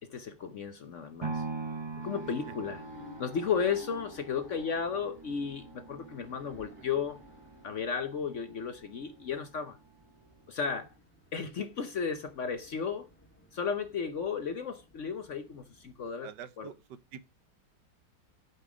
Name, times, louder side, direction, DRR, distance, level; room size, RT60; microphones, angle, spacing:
voice 1, 0.0-1.4 2.0-2.8 3.2-7.2 7.6-9.8 10.5-10.9 11.3-13.1 13.5-16.3 16.6-16.7, left 6 dB, 55° left, 0.9 m, -34 dB
sound 1, 1.2-9.3 9.8-9.9, right 3 dB, 45° right, 0.3 m, -43 dB
sound 2, 2.0-16.1, left 2 dB, 10° left, 1.1 m, -57 dB
voice 2, 16.2-17.3, right 9 dB, 75° right, 1.3 m, -46 dB
11.0 x 5.5 x 4.9 m
omnidirectional pair, 1.9 m